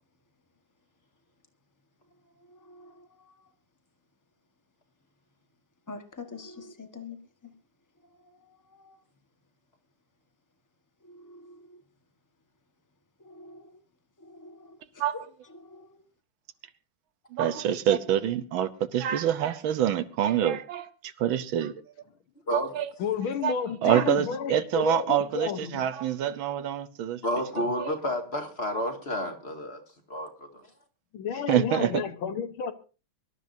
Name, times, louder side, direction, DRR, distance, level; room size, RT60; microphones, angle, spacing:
voice 1, 5.9-7.2 8.8-8.9 11.3-11.5 13.3-13.6 14.3-14.7 15.7-15.9, left 4 dB, 10° left, 1.1 m, -44 dB
voice 2, 17.3-20.9 21.2-21.7 22.5-22.9 23.4-23.5 23.8-27.2 27.6-28.0 31.5-32.0, right 10 dB, 80° right, 1.7 m, -26 dB
voice 3, 23.0-25.8 31.1-32.7, left 7 dB, 85° left, 1.9 m, -31 dB
voice 4, 27.2-29.8 30.1-30.7, left 1 dB, 30° left, 2.2 m, -31 dB
24.0 x 12.5 x 2.7 m
omnidirectional pair, 2.2 m